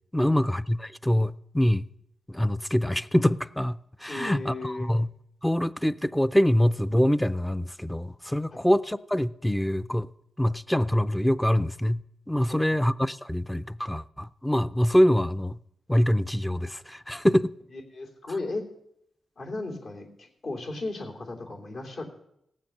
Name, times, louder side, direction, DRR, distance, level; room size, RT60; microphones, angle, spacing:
voice 1, 0.1-1.9 2.3-5.1 5.4-10.1 10.4-12.0 12.3-15.6 15.9-17.5, equal, 5° left, 0.4 m, -24 dB
voice 2, 4.1-4.9 8.5-8.6 12.5-12.8 17.7-18.6 19.4-22.0, left 2 dB, 65° left, 3.0 m, -36 dB
17.5 x 7.4 x 6.6 m
cardioid pair, 75°, 0 cm